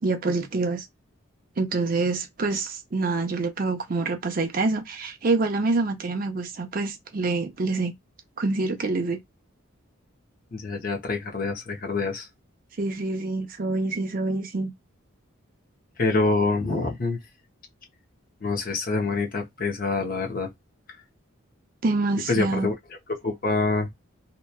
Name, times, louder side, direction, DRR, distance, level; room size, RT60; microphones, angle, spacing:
voice 1, 0.0-0.9 1.6-7.9 8.4-9.2 12.8-14.7 21.8-22.7, right 3 dB, 40° right, 0.5 m, -26 dB
voice 2, 10.5-12.3 16.0-17.2 18.4-20.5 22.3-22.7 23.2-23.9, left 3 dB, 40° left, 0.7 m, -26 dB
2.8 x 2.2 x 2.2 m
head